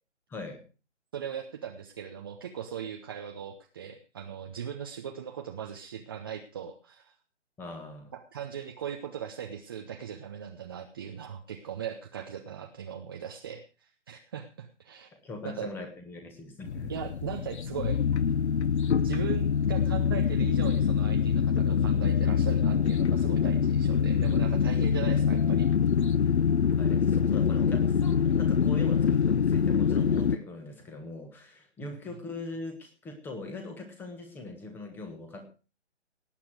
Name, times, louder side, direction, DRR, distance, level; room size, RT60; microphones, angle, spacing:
voice 1, 0.3-0.6 7.6-8.1 15.1-16.9 26.8-35.5, left 2 dB, 5° left, 5 dB, 1.4 m, -41 dB
voice 2, 1.1-7.2 8.1-15.1 15.4-15.7 16.9-18.0 19.0-25.7, right 8 dB, 20° right, 3 dB, 0.7 m, -39 dB
sound 1, 16.6-30.4, left 7 dB, 65° left, 0.7 m, -25 dB
18.0 x 8.6 x 4.9 m, 0.34 s
figure-of-eight pair, 150°, 36 cm